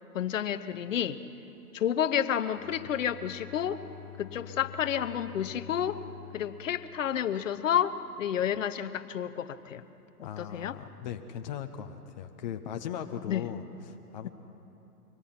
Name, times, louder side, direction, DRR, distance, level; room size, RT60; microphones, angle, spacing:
voice 1, 0.1-1.2 1.7-3.8 4.2-6.0 6.3-7.9 8.2-9.8 10.4-10.7 13.3-13.4, left 9 dB, 55° left, 11 dB, 1.0 m, -30 dB
Bowed string instrument, 2.5-7.8, left 10 dB, ahead, 2.5 m, -48 dB
voice 2, 10.2-14.3, left 9 dB, 30° left, 6 dB, 0.8 m, -38 dB
24.5 x 19.0 x 5.9 m, 2.9 s
hypercardioid pair, 145°, 46 cm